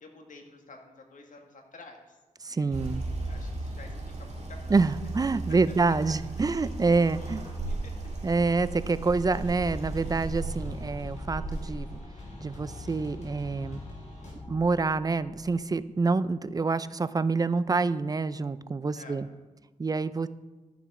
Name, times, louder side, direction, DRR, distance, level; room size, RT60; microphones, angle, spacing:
voice 1, 0.0-2.2 2.5-2.7 3.2-4.8 5.9-8.2 18.8-19.2, left 3 dB, 80° left, 3 dB, 1.7 m, -51 dB
voice 2, 2.4-3.1 4.7-7.4 8.2-12.0 12.4-13.8 14.5-19.3 19.8-20.3, right 4 dB, 30° right, 15 dB, 0.4 m, -27 dB
sound 1, 2.7-12.0, right 2 dB, 55° right, 2.2 m, -36 dB
sound 2, 6.3-15.6, left 3 dB, 30° left, 1.6 m, -46 dB
sound 3, 9.1-14.3, left 1 dB, 65° left, 3.9 m, -45 dB
12.0 x 7.0 x 4.9 m, 1.2 s
wide cardioid pair, 110°, 13 cm